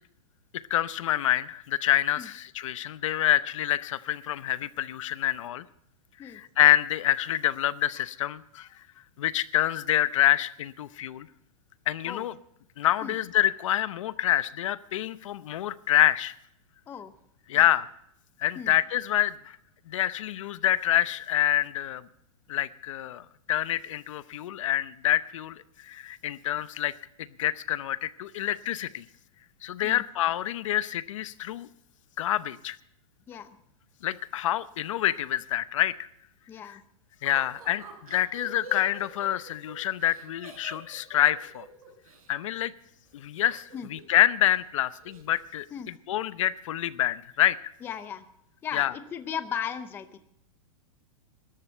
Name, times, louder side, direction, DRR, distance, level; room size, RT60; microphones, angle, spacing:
voice 1, 0.7-5.6 6.2-8.7 9.2-11.3 11.9-12.3 12.8-16.3 17.5-17.9 18.4-19.6 19.9-22.0 22.5-26.9 27.2-29.0 29.6-31.7 32.2-32.8 34.0-36.1 37.2-41.6 42.3-42.7 43.1-43.6 43.9-47.6 48.7-48.9, left 13 dB, 60° left, 16 dB, 0.8 m, -27 dB
voice 2, 36.5-36.8 43.7-43.9 45.7-45.9 47.8-48.2 48.6-50.2, left 8 dB, 10° left, 12 dB, 0.6 m, -36 dB
Laughter, 37.3-42.3 43.4-44.2 44.5-44.6 44.9-45.4, right 2 dB, 75° right, 6.1 m, -46 dB
18.0 x 13.5 x 4.4 m, 0.74 s
supercardioid pair, 165°, 18 cm